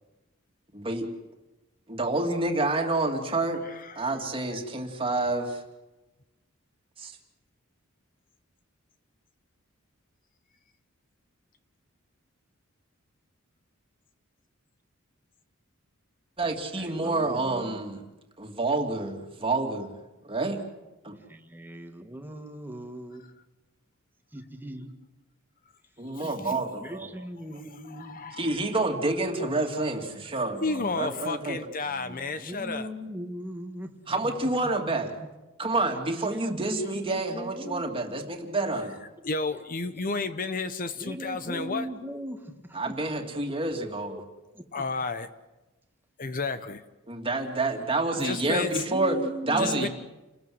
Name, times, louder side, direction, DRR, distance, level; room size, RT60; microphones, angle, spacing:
voice 1, 0.7-1.1 1.9-3.6 4.0-5.6 7.0-7.2 16.4-18.0 18.4-19.9 20.2-20.6 21.0-21.2 26.0-27.1 28.4-31.6 34.1-35.1 35.6-39.0 42.7-44.2 47.1-49.2 49.5-49.9, right 2 dB, 25° right, 3 dB, 2.8 m, -28 dB
voice 2, 3.7-4.0 4.5-4.6 26.1-26.5 27.9-28.5 30.6-32.9 39.2-41.9 44.7-45.3 46.2-46.8 48.2-48.8 49.6-49.9, left 3 dB, 40° left, 11 dB, 1.0 m, -32 dB
voice 3, 16.7-17.8 21.2-23.3 24.3-24.9 26.2-28.2 31.8-34.0 34.2-34.3 36.2-37.8 39.4-39.6 40.0-40.1 41.0-43.0 43.7-44.2 44.5-44.8 48.3-49.9, equal, 10° right, 5 dB, 2.0 m, -39 dB
29.5 x 20.5 x 8.0 m, 1.1 s
head